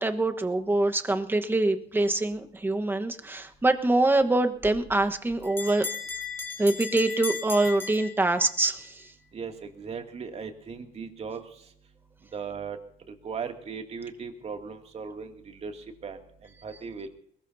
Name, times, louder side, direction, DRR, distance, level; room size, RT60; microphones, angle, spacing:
voice 1, 0.0-5.9 6.6-9.0, right 2 dB, 10° right, 7 dB, 1.2 m, -25 dB
Bell, 4.6-8.7, left 4 dB, 10° left, 3.1 m, -36 dB
voice 2, 9.3-11.4 12.3-12.8 13.2-15.3 15.6-15.8 16.0-16.2 16.6-17.1, right 5 dB, 40° right, 4 dB, 2.5 m, -37 dB
21.5 x 19.5 x 2.8 m, 0.65 s
cardioid pair, 110°, 17 cm